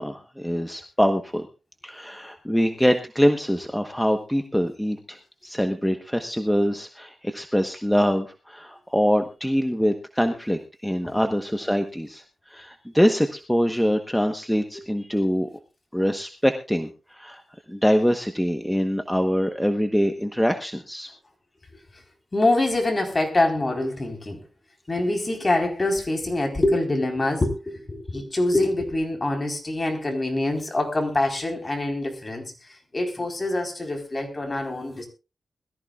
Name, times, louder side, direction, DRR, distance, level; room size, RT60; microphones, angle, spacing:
voice 1, 0.0-1.5 1.8-15.5 15.9-17.4 17.7-21.1, equal, 5° left, 1.1 m, -24 dB
voice 2, 22.3-24.4 24.9-35.1, left 2 dB, 30° left, 4.2 m, -25 dB
21.5 x 14.0 x 2.4 m
wide cardioid pair, 95°, 0 cm